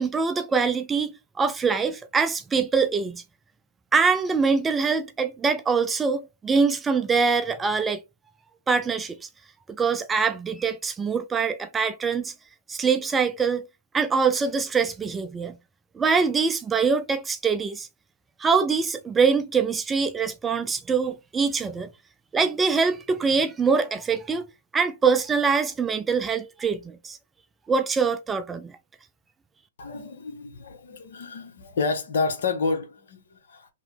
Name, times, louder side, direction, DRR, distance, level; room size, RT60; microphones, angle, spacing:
voice 1, 0.0-3.2 3.9-8.0 8.7-9.3 9.7-12.3 12.7-13.6 13.9-15.6 16.0-17.9 18.4-21.9 22.3-24.5 24.7-27.2 27.7-28.8, right 5 dB, 15° right, 0.4 m, -24 dB
voice 2, 29.8-33.7, left 4 dB, 65° left, 1.1 m, -29 dB
3.0 x 2.9 x 3.4 m
hypercardioid pair, 130°, 0 cm